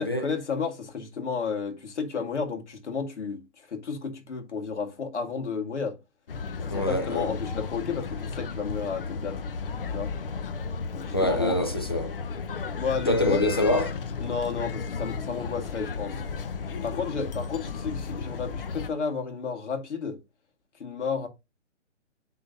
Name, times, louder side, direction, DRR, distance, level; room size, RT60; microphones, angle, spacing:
voice 1, 0.0-6.0 6.7-9.4 9.9-10.1 10.9-11.6 12.8-13.5 14.2-16.2 16.8-20.2 20.8-21.3, left 5 dB, 65° left, 2.0 m, -32 dB
sound 1, 6.3-18.9, left 5 dB, 45° left, 0.8 m, -34 dB
voice 2, 6.7-7.3 11.1-12.1 13.1-14.0, left 1 dB, 20° left, 0.4 m, -25 dB
9.3 x 3.7 x 2.7 m
hypercardioid pair, 155°, 38 cm